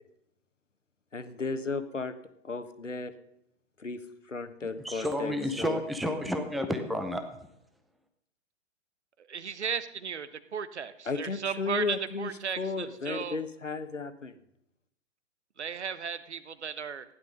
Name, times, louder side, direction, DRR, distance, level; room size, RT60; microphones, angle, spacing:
voice 1, 1.1-2.1 2.4-3.1 3.8-4.0 4.3-5.8 11.1-12.3 12.6-14.3, left 4 dB, 80° left, 11 dB, 1.4 m, -34 dB
voice 2, 4.6-7.5, equal, ahead, 7 dB, 0.5 m, -31 dB
voice 3, 9.3-13.4 15.6-17.0, right 6 dB, 65° right, 14 dB, 1.1 m, -35 dB
15.5 x 11.0 x 5.3 m, 0.79 s
figure-of-eight pair, 115°, 36 cm